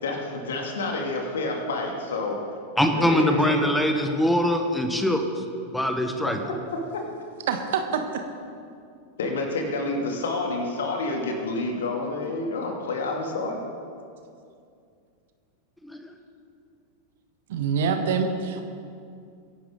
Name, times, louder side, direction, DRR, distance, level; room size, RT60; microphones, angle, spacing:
voice 1, 0.0-2.4 2.8-3.6 9.2-13.6, left 2 dB, 60° left, 1 dB, 2.5 m, -29 dB
voice 2, 2.8-5.2 5.7-6.4 15.8-16.1, left 1 dB, 5° left, 5 dB, 1.3 m, -23 dB
voice 3, 7.5-8.2 17.5-18.6, right 6 dB, 55° right, 6 dB, 1.4 m, -25 dB
22.5 x 11.5 x 3.8 m, 2.4 s
figure-of-eight pair, 90°, 0 cm